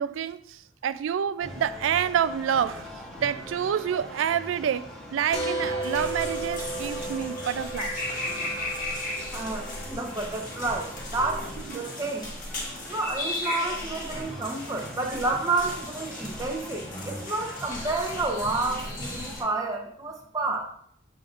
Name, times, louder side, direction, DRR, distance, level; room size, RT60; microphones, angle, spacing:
voice 1, 0.0-2.9 3.2-4.9 5.1-8.0 8.6-8.7 11.7-11.8 15.1-15.2, right 8 dB, 90° right, 0.3 m, -28 dB
sound 1, 1.4-19.5, equal, 5° left, 1.3 m, -42 dB
sound 2, 5.3-10.8, right 2 dB, 30° left, 1.6 m, -35 dB
sound 3, 5.8-19.4, left 1 dB, 45° left, 1.5 m, -36 dB
voice 2, 9.3-11.5 11.7-12.3 12.9-20.7, right 3 dB, 20° right, 0.7 m, -30 dB
6.8 x 6.2 x 2.4 m
head